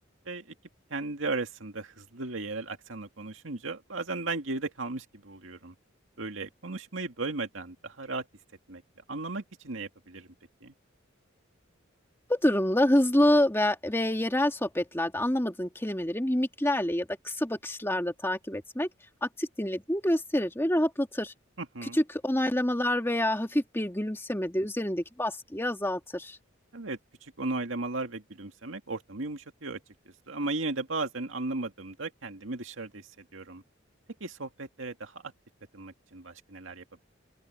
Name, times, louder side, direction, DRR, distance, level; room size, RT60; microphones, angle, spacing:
voice 1, 0.9-5.7 6.2-8.3 8.7-8.8 9.1-10.3 10.6-10.7 21.6-22.0 26.7-29.8 30.3-33.6 34.2-35.3 35.7-37.0, right 3 dB, 75° right, 2.2 m, -36 dB
voice 2, 12.3-18.9 19.2-21.3 22.2-26.4, left 1 dB, 10° left, 2.0 m, -27 dB
open air
head